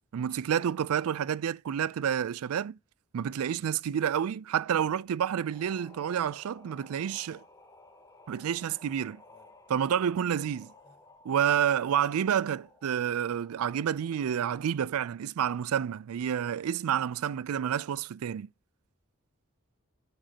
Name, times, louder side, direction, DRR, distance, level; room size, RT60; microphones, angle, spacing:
voice 1, 0.1-2.8 3.1-7.4 8.3-9.2 9.7-10.7 11.2-18.5, right 9 dB, 75° right, 0.3 m, -29 dB
sound 1, 5.3-15.0, left 2 dB, 15° left, 0.9 m, -56 dB
10.0 x 5.0 x 2.8 m
head